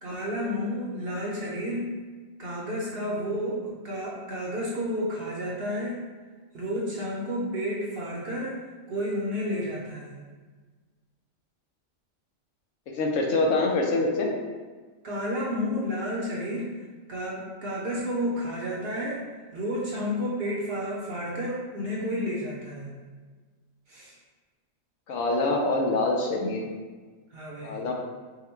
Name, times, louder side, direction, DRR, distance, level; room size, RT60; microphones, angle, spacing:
voice 1, 0.0-2.0 2.4-6.0 6.5-10.2 15.0-16.7 17.1-19.3 19.5-22.9 23.9-24.1 27.3-27.8, equal, 55° right, -4 dB, 0.7 m, -31 dB
voice 2, 13.0-14.3 25.1-26.6 27.6-27.9, left 2 dB, 70° left, 0 dB, 0.9 m, -25 dB
3.7 x 2.2 x 4.3 m, 1.4 s
omnidirectional pair, 1.4 m